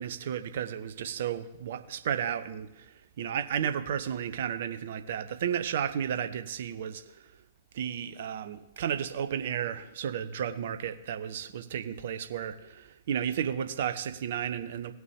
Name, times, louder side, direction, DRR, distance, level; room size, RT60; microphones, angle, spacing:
voice 1, 0.0-7.3 7.7-14.9, right 9 dB, 55° right, 0.7 m, -33 dB
18.0 x 6.2 x 3.6 m
figure-of-eight pair, 105°, 0 cm